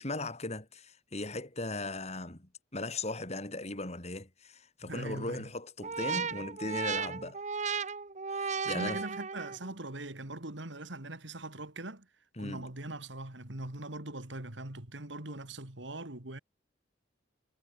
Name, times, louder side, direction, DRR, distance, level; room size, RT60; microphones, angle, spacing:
voice 1, 0.0-7.4 8.3-9.0 12.4-12.7, left 2 dB, 35° left, 3.9 m, -38 dB
voice 2, 4.8-5.5 7.1-7.3 8.6-12.1 12.4-16.4, right 2 dB, 85° right, 3.2 m, -41 dB
sound 1, 5.8-9.7, right 5 dB, 40° right, 1.1 m, -35 dB
head